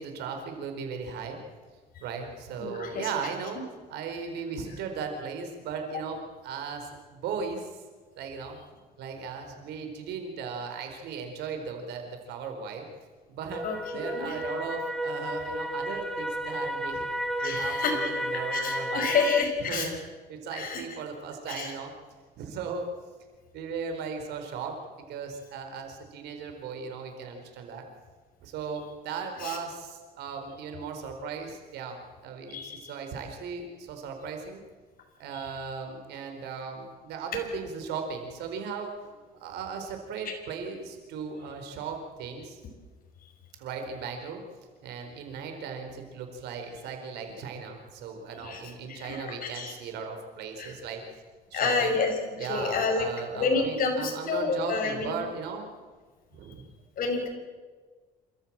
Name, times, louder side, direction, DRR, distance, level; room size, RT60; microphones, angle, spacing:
voice 1, 0.0-1.4 2.0-3.6 3.9-7.7 8.2-8.6 9.0-12.9 13.3-13.6 13.9-17.1 17.4-19.1 19.6-20.0 20.3-21.9 22.4-22.9 23.5-24.8 25.1-27.8 28.4-32.0 32.2-34.6 35.2-38.9 39.4-42.6 43.6-44.4 44.8-51.0 51.5-51.9 52.4-55.7 56.3-56.7, right 5 dB, 80° right, 5 dB, 4.6 m, -37 dB
voice 2, 2.6-3.1 5.9-6.0 13.6-14.4 17.4-18.1 18.5-19.9 20.5-21.0 21.5-21.7 29.4-29.6 32.5-32.9 35.3-35.5 48.4-49.7 50.6-50.8 51.5-53.1 53.3-55.2 57.0-57.3, left 4 dB, 55° left, 3 dB, 5.5 m, -29 dB
sound 1, 13.5-19.4, equal, ahead, 1.2 m, -32 dB
27.5 x 14.0 x 7.5 m, 1.4 s
cardioid pair, 110°, 17 cm